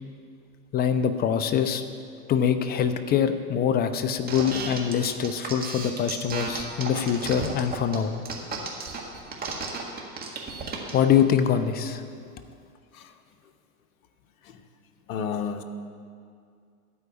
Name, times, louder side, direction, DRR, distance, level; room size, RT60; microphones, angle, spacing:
voice 1, 0.7-1.8 2.3-8.1 10.9-12.0, left 8 dB, 20° left, 10 dB, 0.5 m, -24 dB
sound 1, 4.3-11.0, right 4 dB, 20° right, 1.7 m, -33 dB
voice 2, 15.1-15.6, left 7 dB, 60° left, 6 dB, 1.0 m, -32 dB
13.0 x 4.8 x 8.4 m, 2.3 s
hypercardioid pair, 105°, 45 cm